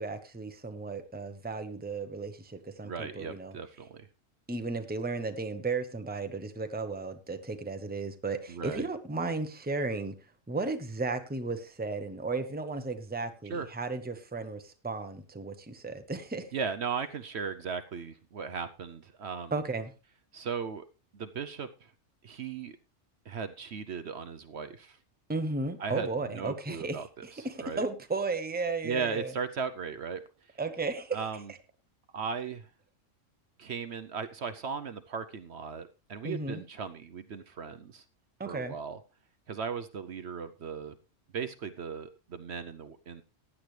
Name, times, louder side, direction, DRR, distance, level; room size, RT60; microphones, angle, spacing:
voice 1, 0.0-3.5 4.5-10.1 10.5-16.5 19.5-19.9 25.3-29.3 30.6-31.2 36.2-36.6 38.4-38.7, right 3 dB, 10° right, 8 dB, 0.9 m, -34 dB
voice 2, 2.8-4.1 8.5-8.9 13.4-13.7 16.5-19.5 20.3-20.8 21.1-21.9 22.2-22.8 23.3-25.0 25.8-27.9 28.8-30.2 31.1-31.5 32.1-32.7 33.6-38.0 38.5-39.0 39.5-41.0 41.3-43.2, right 6 dB, 60° right, 10 dB, 1.0 m, -37 dB
15.5 x 10.0 x 3.3 m, 0.32 s
omnidirectional pair, 1.3 m